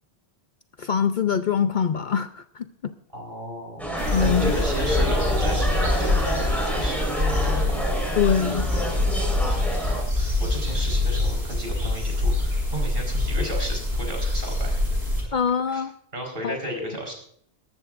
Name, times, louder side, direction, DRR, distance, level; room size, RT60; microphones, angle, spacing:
voice 1, 0.8-2.9 4.1-4.6 8.2-8.7 15.3-15.9 16.4-16.6, left 7 dB, 50° left, 9 dB, 0.7 m, -24 dB
voice 2, 3.1-7.7 10.2-15.0 15.7-15.8 16.1-17.1, right 1 dB, 55° right, 0 dB, 4.5 m, -35 dB
sound 1, 3.8-10.0, equal, ahead, 4.4 m, -28 dB
sound 2, 4.0-15.2, left 2 dB, 75° right, 6.2 m, -25 dB
20.5 x 13.5 x 2.5 m, 0.64 s
omnidirectional pair, 1.1 m